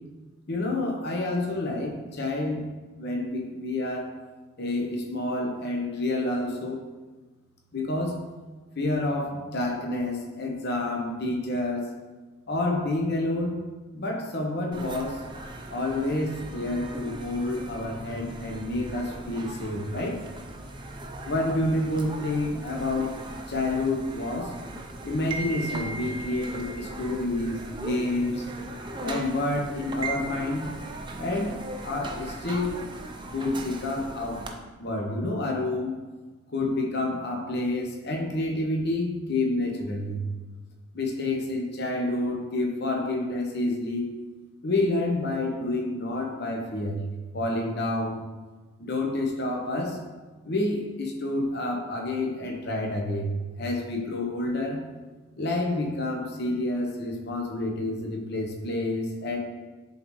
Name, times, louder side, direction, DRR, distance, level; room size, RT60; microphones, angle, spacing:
voice 1, 0.5-2.7 3.0-4.1 4.6-6.8 7.7-8.2 8.8-11.9 12.5-13.6 13.9-15.2 15.7-20.2 21.2-23.2 23.5-24.5 25.0-28.4 29.0-30.7 31.2-32.7 33.3-34.4 34.8-35.9 36.5-40.2 40.9-44.1 44.6-47.0 47.3-48.2 48.8-50.0 50.4-53.3 53.6-54.8 55.4-59.4, left 2 dB, 50° left, 1 dB, 0.9 m, -28 dB
sound 1, 14.7-34.5, right 2 dB, 20° right, 0.5 m, -38 dB
10.5 x 4.0 x 3.1 m, 1.3 s
head